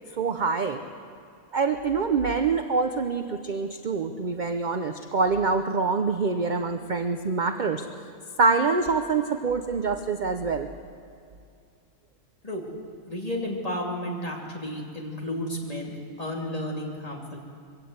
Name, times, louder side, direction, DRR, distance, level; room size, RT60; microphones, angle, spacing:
voice 1, 0.2-0.8 1.5-7.8 8.4-10.7, right 4 dB, 45° right, 7 dB, 0.7 m, -25 dB
voice 2, 13.1-17.4, left 1 dB, 25° left, -1 dB, 2.8 m, -32 dB
22.5 x 16.5 x 8.0 m, 2.3 s
omnidirectional pair, 1.4 m